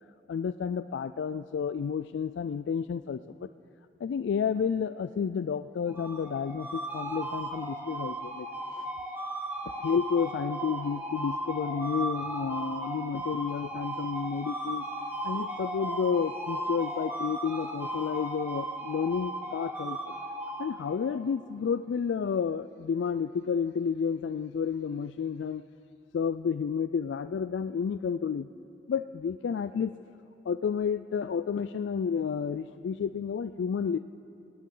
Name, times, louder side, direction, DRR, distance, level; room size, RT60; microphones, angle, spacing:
voice 1, 0.3-3.5 4.0-8.5 8.8-8.9 9.8-14.8 15.2-20.0 20.6-25.6 26.1-28.5 28.9-29.9 30.5-34.0, left 6 dB, 85° left, 12 dB, 0.3 m, -31 dB
sound 1, 5.9-21.1, right 1 dB, 10° right, 1.4 m, -36 dB
18.0 x 18.0 x 3.8 m, 2.8 s
head